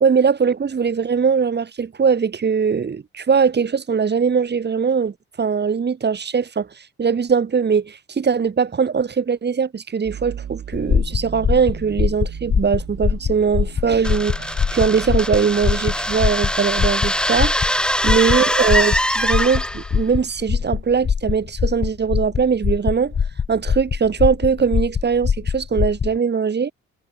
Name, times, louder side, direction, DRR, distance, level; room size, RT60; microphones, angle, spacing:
voice 1, 0.0-6.7 7.0-17.5 18.0-23.1 23.5-26.7, right 6 dB, 35° right, 1.6 m, -20 dB
Time-Stretched Rubbed Metal, 10.0-18.0, right 9 dB, 60° right, 7.7 m, -38 dB
sound 1, 10.7-26.2, left 6 dB, 40° left, 2.1 m, -23 dB
sound 2, 14.0-20.0, equal, 5° left, 3.6 m, -23 dB
cardioid pair, 90°, 30 cm